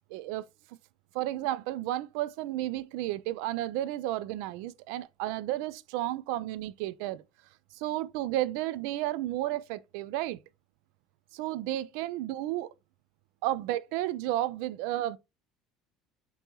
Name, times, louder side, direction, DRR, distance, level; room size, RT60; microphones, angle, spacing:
voice 1, 0.1-0.5 1.1-7.2 7.8-10.4 11.3-12.7 13.4-15.2, right 14 dB, 80° right, 0.4 m, -32 dB
5.3 x 2.9 x 2.9 m
supercardioid pair, 110°, 0 cm